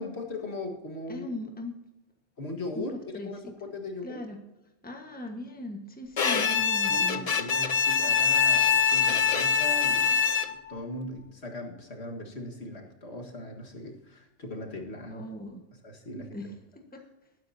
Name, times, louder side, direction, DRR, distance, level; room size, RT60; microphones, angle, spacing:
voice 1, 0.0-1.3 2.4-4.2 6.3-6.5 6.9-15.2 15.8-16.5 16.9-17.0, left 2 dB, 55° left, 1 dB, 1.9 m, -39 dB
voice 2, 1.1-1.7 2.7-2.9 3.1-3.5 4.0-4.4 4.8-7.3 15.1-15.6 16.1-16.5 16.7-17.0, left 1 dB, 5° left, 3 dB, 1.4 m, -39 dB
Bowed string instrument, 6.2-10.8, left 7 dB, 40° left, 0.6 m, -24 dB
19.5 x 9.9 x 2.8 m, 1.0 s
omnidirectional pair, 1.3 m